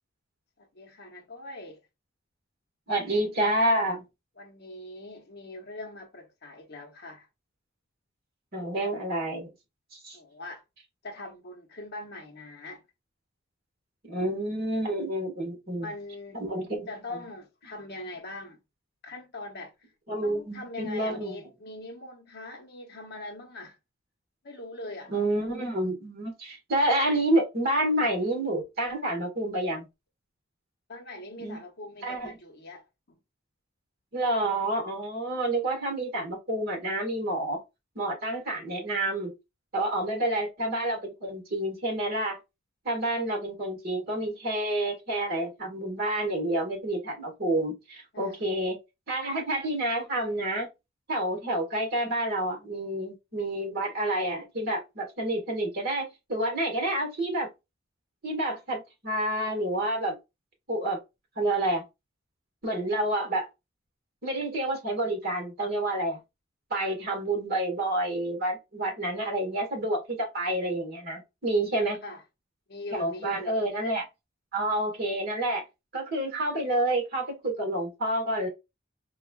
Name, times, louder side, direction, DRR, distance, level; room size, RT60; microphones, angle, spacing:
voice 1, 0.6-1.8 4.4-7.3 10.1-10.6 11.0-12.8 15.8-16.4 16.9-18.6 19.0-19.7 20.2-23.8 24.4-25.1 30.9-33.2 48.1-48.4 72.0-72.2 72.7-73.7, left 2 dB, 55° left, 0.8 m, -42 dB
voice 2, 2.9-4.0 8.5-9.5 9.9-10.2 14.0-15.9 16.3-17.2 20.1-21.4 25.1-29.9 31.4-31.6 32.0-32.3 34.1-37.6 37.9-39.3 39.7-42.4 42.8-48.8 49.1-50.7 51.1-57.5 58.2-60.2 60.7-61.0 61.3-61.8 62.6-63.5 64.2-66.2 66.7-72.0 72.9-74.1 74.5-75.6 75.9-78.5, right 1 dB, 50° right, 1.6 m, -29 dB
4.5 x 2.3 x 2.2 m
head